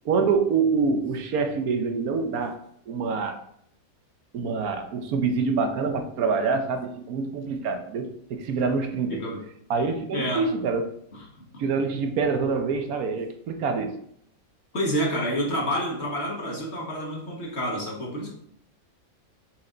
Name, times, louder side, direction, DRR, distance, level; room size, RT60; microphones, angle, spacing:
voice 1, 0.0-2.6 2.9-3.4 4.3-9.2 9.7-10.9 11.6-13.9, right 4 dB, 75° right, 6 dB, 1.2 m, -26 dB
voice 2, 9.1-9.4 10.1-10.5 14.7-18.3, equal, 45° left, -1 dB, 1.8 m, -28 dB
6.9 x 5.0 x 3.8 m, 0.69 s
omnidirectional pair, 1.6 m